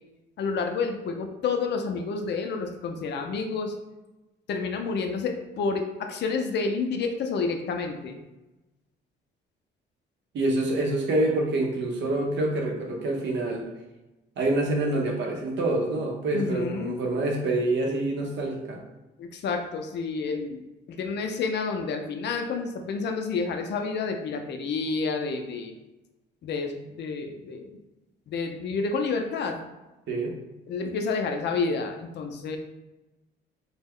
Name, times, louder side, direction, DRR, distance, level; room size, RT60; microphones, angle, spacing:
voice 1, 0.4-3.7 4.5-8.2 16.3-16.9 19.2-25.8 26.4-27.8 28.3-29.6 30.7-32.6, left 4 dB, 60° left, 4 dB, 0.4 m, -29 dB
voice 2, 10.3-13.7 14.4-18.8 30.1-30.3, right 2 dB, 65° right, 1 dB, 0.7 m, -26 dB
2.3 x 2.0 x 3.5 m, 1.1 s
cardioid pair, 90°, 20 cm